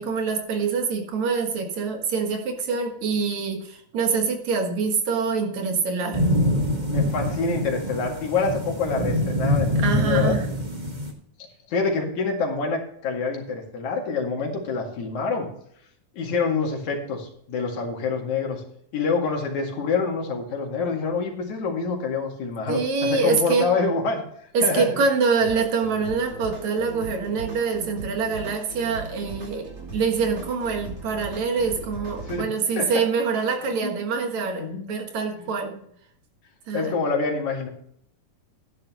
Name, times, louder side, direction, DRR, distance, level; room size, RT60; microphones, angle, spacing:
voice 1, 0.0-6.2 9.8-10.4 22.7-23.7 24.5-35.8 36.7-37.0, right 5 dB, 70° right, 4 dB, 2.8 m, -25 dB
sound 1, 6.1-11.1, left 1 dB, 20° right, 1.3 m, -24 dB
voice 2, 6.9-10.4 11.7-15.5 16.1-18.6 18.9-25.0 28.4-28.5 32.2-32.5 32.8-32.9 33.8-34.0 34.6-35.0 35.4-35.5 36.7-37.7, left 4 dB, 75° left, 0 dB, 3.5 m, -26 dB
sound 2, 25.4-32.4, right 3 dB, 50° right, 3.6 m, -38 dB
13.0 x 10.5 x 3.0 m, 0.68 s
omnidirectional pair, 3.4 m